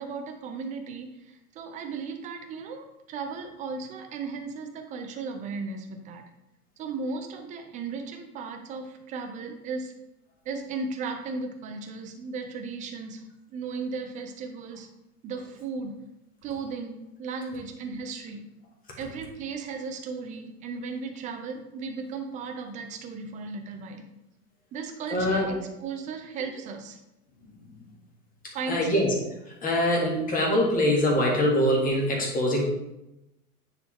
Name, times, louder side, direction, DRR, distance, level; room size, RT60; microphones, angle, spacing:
voice 1, 0.0-6.2 6.8-9.9 10.4-13.2 13.5-14.9 15.2-16.0 16.4-18.4 19.0-24.1 24.7-27.0 28.5-28.8, right 4 dB, 15° right, 5 dB, 0.6 m, -36 dB
voice 2, 25.1-25.5 28.7-29.1 29.6-32.6, left 1 dB, 15° left, -2 dB, 1.8 m, -23 dB
9.3 x 4.1 x 3.2 m, 0.90 s
figure-of-eight pair, 100°, 48 cm